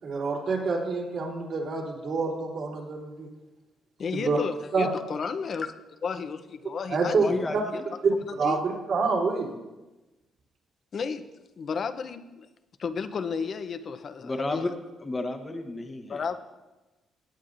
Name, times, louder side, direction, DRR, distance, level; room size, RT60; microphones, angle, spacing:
voice 1, 0.0-3.3 4.1-4.4 4.7-4.9 6.9-7.2 7.5-7.6 8.4-9.5, right 4 dB, 65° right, -3 dB, 3.4 m, -27 dB
voice 2, 4.0-5.7 6.0-7.3 8.4-8.6 10.9-11.3 11.6-12.5 12.8-14.7 16.1-16.4, left 5 dB, 50° left, 11 dB, 0.7 m, -32 dB
voice 3, 7.2-7.9 14.2-14.7 15.0-16.2, left 2 dB, 25° left, 4 dB, 1.0 m, -32 dB
18.0 x 8.3 x 2.6 m, 1.1 s
cardioid pair, 90°, 0 cm